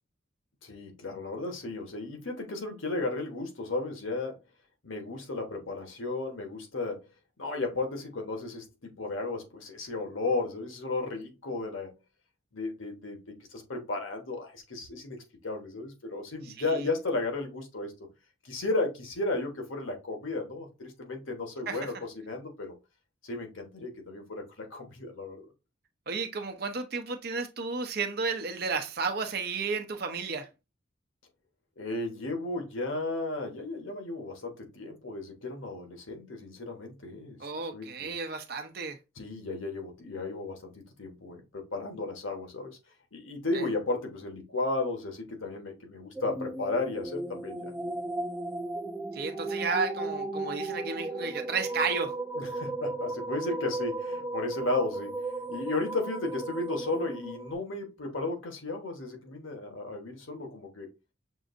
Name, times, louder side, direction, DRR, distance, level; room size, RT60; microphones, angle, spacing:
voice 1, 0.6-4.4 4.8-7.1 7.4-11.9 12.5-17.9 18.4-22.8 23.2-25.4 31.8-38.1 39.2-42.8 43.1-47.7 52.4-55.1 55.5-60.9, left 2 dB, 85° left, 1.2 m, -34 dB
voice 2, 26.1-30.5 37.4-39.0 43.5-43.7 49.1-52.2, right 4 dB, 50° right, 0.7 m, -32 dB
sound 1, 46.2-57.5, right 2 dB, 10° right, 0.3 m, -35 dB
6.1 x 2.7 x 2.5 m
head